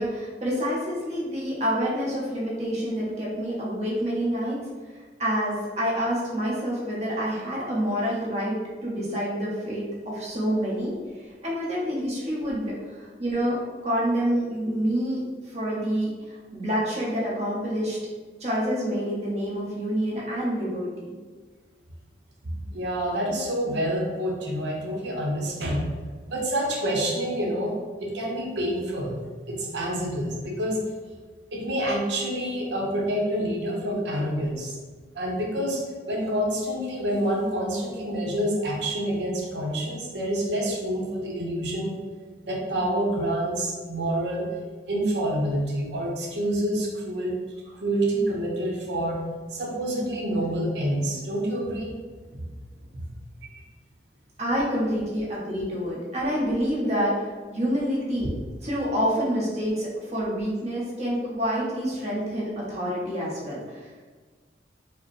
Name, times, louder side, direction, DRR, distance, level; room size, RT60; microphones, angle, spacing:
voice 1, 0.0-4.6 5.2-11.0 11.4-18.0 18.4-21.1 54.4-58.3 58.6-63.9, equal, 35° right, -6 dB, 1.0 m, -27 dB
voice 2, 22.4-25.9 26.3-29.2 29.5-30.8 31.5-34.8 35.1-35.8 36.1-42.0 42.4-44.5 44.9-47.4 47.8-49.2 49.5-52.0 52.9-53.0, right 1 dB, 75° right, -2 dB, 0.7 m, -27 dB
4.7 x 2.0 x 3.1 m, 1.4 s
head